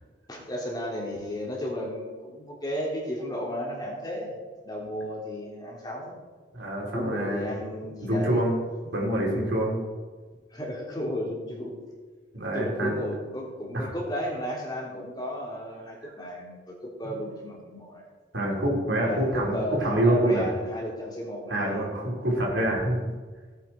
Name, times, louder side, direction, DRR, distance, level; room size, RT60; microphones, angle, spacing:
voice 1, 0.3-4.3 4.6-6.2 6.9-8.4 8.8-8.9 10.5-11.8 12.5-18.1 19.0-21.8, equal, 20° left, -3 dB, 3.3 m, -33 dB
voice 2, 6.5-7.5 8.0-8.6 8.9-9.8 12.3-12.9 13.7-13.9 16.0-16.1 17.0-17.1 18.3-20.4 21.5-23.0, right 1 dB, 80° right, -3 dB, 4.5 m, -26 dB
18.0 x 9.2 x 4.6 m, 1.4 s
head